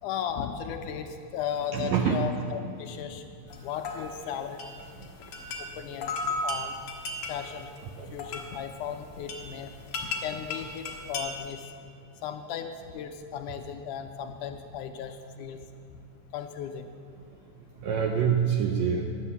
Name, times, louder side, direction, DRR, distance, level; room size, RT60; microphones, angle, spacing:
voice 1, 0.0-3.2 3.6-4.6 5.6-6.1 6.4-6.8 7.3-7.7 8.1-9.7 10.2-11.7 12.2-15.6 16.3-16.9, left 8 dB, 80° left, 6 dB, 2.0 m, -36 dB
voice 2, 1.7-2.2 5.0-5.1 8.0-8.1 17.8-19.1, right 7 dB, 80° right, 2 dB, 1.6 m, -25 dB
sound 1, 3.5-11.5, left 2 dB, 60° left, 1.5 m, -36 dB
11.0 x 8.3 x 6.9 m, 2.5 s
omnidirectional pair, 3.8 m